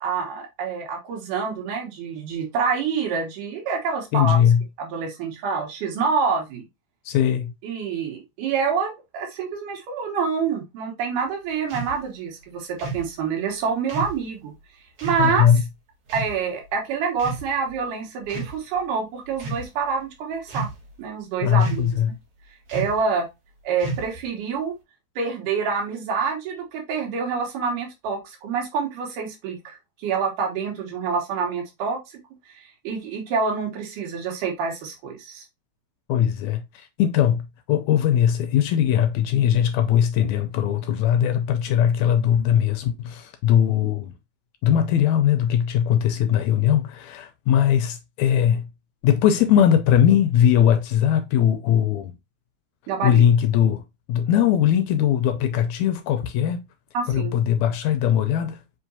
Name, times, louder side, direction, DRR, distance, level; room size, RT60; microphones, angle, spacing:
voice 1, 0.0-4.4 4.8-6.6 7.6-14.5 15.0-15.4 16.1-20.7 21.0-22.1 22.7-23.3 23.6-24.7 25.2-32.2 32.5-35.5 52.9-53.2 56.9-57.3, right 5 dB, 85° right, 2.7 m, -27 dB
voice 2, 4.1-4.6 7.1-7.5 15.2-15.6 21.4-22.1 36.1-44.1 44.6-48.7 49.0-52.1 53.0-53.8 54.1-56.6 57.1-58.6, left 9 dB, 80° left, 1.7 m, -20 dB
sound 1, 11.7-12.0 12.8-13.1 13.9-14.2 15.0-15.3 16.1-16.4 17.2-17.7 18.2-18.6 19.3-19.7 20.5-20.9 21.6-22.0 22.7-23.0 23.8-24.3, right 3 dB, 55° right, 2.1 m, -32 dB
5.7 x 2.8 x 2.6 m
omnidirectional pair, 3.6 m